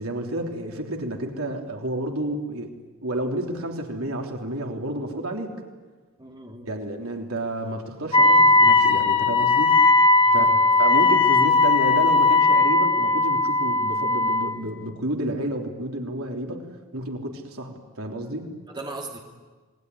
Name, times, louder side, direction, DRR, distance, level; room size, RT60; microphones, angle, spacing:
voice 1, 0.0-2.7 3.0-5.5 6.7-9.8 10.3-18.5, right 1 dB, 80° right, 2 dB, 3.4 m, -30 dB
voice 2, 6.2-6.7 10.2-10.8 18.7-19.2, right 2 dB, 20° right, 0 dB, 3.1 m, -38 dB
Wind instrument woodwind instrument, 8.1-14.6, left 3 dB, 25° left, 1.6 m, -18 dB
27.0 x 20.5 x 9.8 m, 1.3 s
head